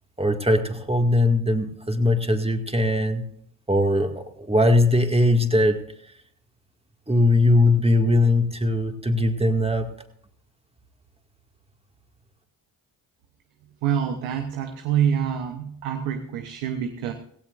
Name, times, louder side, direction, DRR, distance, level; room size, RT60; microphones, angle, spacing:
voice 1, 0.2-3.2 3.7-5.8 7.1-9.9, left 1 dB, 10° right, 4 dB, 2.1 m, -20 dB
voice 2, 13.8-17.1, right 8 dB, 90° right, 6 dB, 1.1 m, -26 dB
17.5 x 16.0 x 2.5 m, 0.67 s
supercardioid pair, 55°, 48 cm